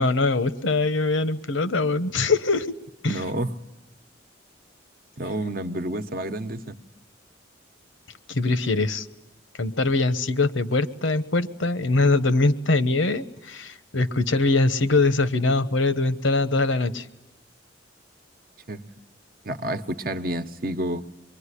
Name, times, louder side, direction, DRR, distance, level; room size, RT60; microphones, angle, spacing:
voice 1, 0.0-2.7 3.0-3.2 8.3-9.1 9.6-17.0, left 3 dB, 80° left, 13 dB, 1.1 m, -22 dB
voice 2, 3.1-3.5 5.2-6.8 18.7-18.9 19.4-21.0, right 1 dB, 50° right, 8 dB, 1.0 m, -29 dB
24.5 x 23.0 x 9.9 m, 0.93 s
head